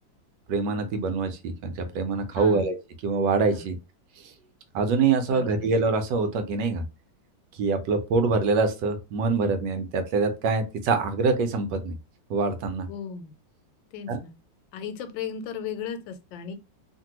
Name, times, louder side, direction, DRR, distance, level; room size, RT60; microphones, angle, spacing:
voice 1, 0.5-2.7 3.0-3.8 4.2-4.3 4.7-6.8 7.5-11.9 12.3-12.9 14.1-14.2, right 4 dB, 80° right, 1.2 m, -25 dB
voice 2, 2.4-2.7 3.5-3.6 5.3-5.7 12.9-13.3 13.9-14.3 14.7-16.5, left 7 dB, 85° left, 1.3 m, -36 dB
2.8 x 2.6 x 2.9 m
omnidirectional pair, 2.0 m